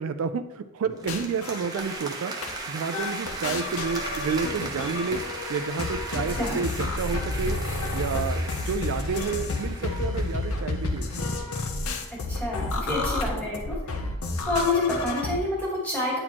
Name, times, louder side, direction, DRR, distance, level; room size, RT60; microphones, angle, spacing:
voice 1, 0.0-2.3 2.7-5.2 5.5-7.6 7.9-11.3 12.9-13.0, right 5 dB, 75° right, 10 dB, 0.3 m, -30 dB
sound 1, 0.9-2.1 2.4-2.6 2.9-15.4, left 2 dB, 90° left, 0.6 m, -31 dB
sound 2, 1.0-11.3, right 2 dB, 20° right, 0.7 m, -37 dB
voice 2, 12.1-13.8 14.5-16.2, left 2 dB, 10° left, -6 dB, 2.0 m, -28 dB
8.7 x 4.2 x 2.9 m, 0.99 s
head